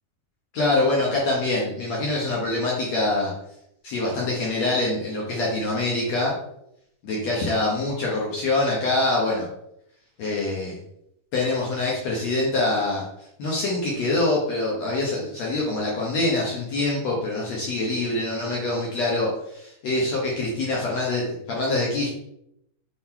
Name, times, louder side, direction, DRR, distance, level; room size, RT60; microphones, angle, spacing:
voice 1, 0.5-3.3 3.8-6.3 7.0-9.5 10.2-10.8 11.3-13.0 13.4-22.1, left 2 dB, 70° left, -4 dB, 1.7 m, -25 dB
6.3 x 3.9 x 4.3 m, 0.78 s
omnidirectional pair, 4.4 m